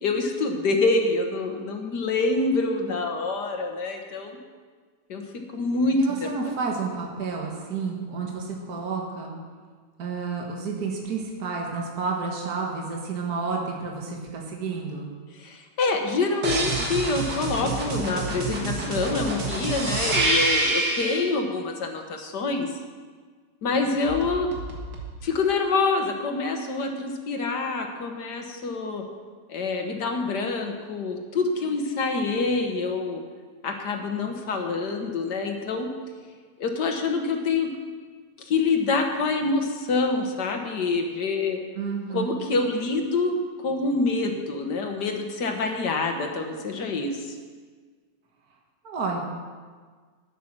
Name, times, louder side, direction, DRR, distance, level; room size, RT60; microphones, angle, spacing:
voice 1, 0.0-4.4 5.1-5.2 5.5-6.3 15.4-22.7 23.6-24.5 25.2-29.0 29.5-33.2 33.6-35.9 36.6-37.7 38.4-41.6 42.1-47.4, left 3 dB, 75° left, 4 dB, 1.9 m, -26 dB
voice 2, 6.0-9.3 10.0-15.1 41.8-42.4 48.8-49.2, right 4 dB, 65° right, -1 dB, 2.0 m, -30 dB
sound 1, 16.4-21.3 24.0-25.1, right 2 dB, 80° right, 2.4 m, -27 dB
11.5 x 9.3 x 6.1 m, 1.5 s
omnidirectional pair, 1.8 m